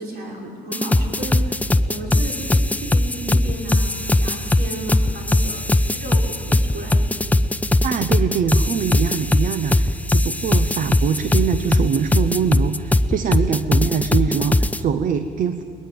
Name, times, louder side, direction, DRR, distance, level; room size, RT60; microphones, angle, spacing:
voice 1, 0.0-7.0, right 1 dB, 70° right, 0 dB, 5.9 m, -33 dB
sound 1, 0.7-14.8, left 2 dB, 10° left, 0.5 m, -19 dB
voice 2, 7.8-15.6, right 7 dB, 50° right, 11 dB, 0.9 m, -23 dB
22.0 x 19.5 x 8.8 m, 2.4 s
cardioid pair, 110°, 17 cm